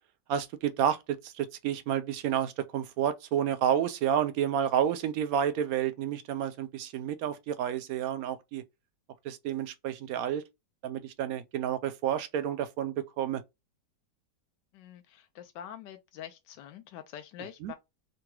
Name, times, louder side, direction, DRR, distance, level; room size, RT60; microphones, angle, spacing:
voice 1, 0.3-8.6 9.2-10.4 10.8-13.4 17.6-17.7, right 9 dB, 70° right, 0.9 m, -30 dB
voice 2, 14.7-17.8, left 10 dB, 85° left, 1.2 m, -45 dB
3.8 x 2.2 x 4.5 m
omnidirectional pair, 1.8 m